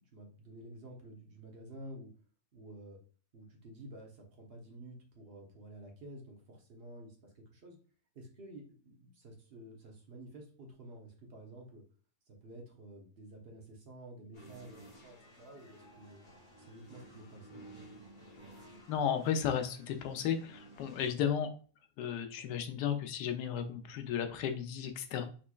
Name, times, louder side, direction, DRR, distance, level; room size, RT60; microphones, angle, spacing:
voice 1, 0.1-2.1 2.5-3.0 3.3-7.2 7.5-7.8 8.1-11.8 12.3-16.2 16.7-17.6, right 1 dB, 45° right, 1 dB, 0.9 m, -51 dB
sound 1, 14.3-21.1, right 1 dB, 35° left, 1.0 m, -54 dB
voice 2, 18.9-21.5 22.0-25.2, left 8 dB, 85° left, 6 dB, 1.2 m, -34 dB
4.0 x 3.1 x 2.3 m, 0.39 s
omnidirectional pair, 1.8 m